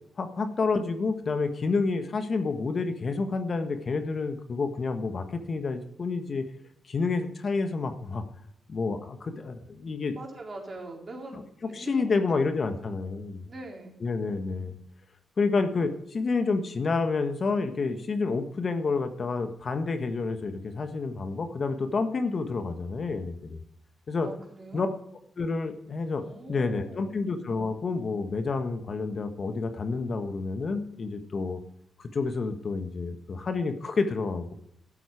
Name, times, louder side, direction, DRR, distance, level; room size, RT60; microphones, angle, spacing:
voice 1, 0.2-6.5 6.8-8.2 8.7-10.1 11.8-13.4 14.0-14.8 15.4-23.6 24.1-24.3 24.7-24.9 25.4-31.6 32.0-34.5, left 4 dB, 50° left, 8 dB, 1.3 m, -29 dB
voice 2, 10.1-13.0 13.5-14.0 24.2-24.8 26.2-27.1, right 2 dB, 40° right, 0 dB, 3.8 m, -43 dB
12.5 x 7.8 x 4.9 m, 0.73 s
supercardioid pair, 60°, 0 cm